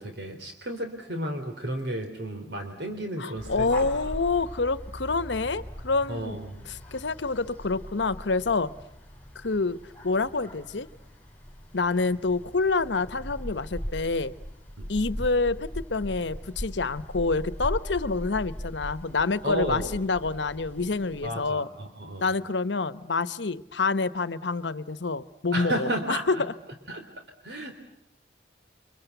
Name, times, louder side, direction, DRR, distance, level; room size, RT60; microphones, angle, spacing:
voice 1, 0.0-4.1 6.1-6.7 14.8-14.9 19.4-19.9 21.2-22.3 25.5-26.4 26.9-27.0 27.4-27.8, right 1 dB, 70° right, 5 dB, 3.3 m, -33 dB
voice 2, 3.2-6.4 6.9-8.7 9.3-10.9 11.7-14.3 14.9-21.7 22.2-26.5, left 3 dB, 80° left, 15 dB, 1.0 m, -27 dB
sound 1, 3.4-21.5, equal, 10° left, 4.8 m, -40 dB
29.5 x 24.5 x 8.2 m, 0.80 s
head